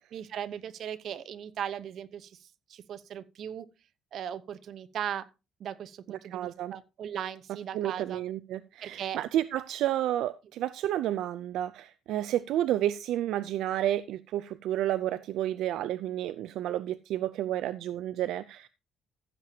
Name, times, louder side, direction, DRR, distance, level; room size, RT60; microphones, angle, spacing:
voice 1, 0.1-3.7 4.1-5.3 5.6-8.2 8.8-9.2, right 9 dB, 60° right, 0.9 m, -38 dB
voice 2, 6.3-6.7 7.7-18.7, right 12 dB, 80° right, 0.4 m, -31 dB
15.0 x 7.6 x 2.8 m
cardioid pair, 135°, 0 cm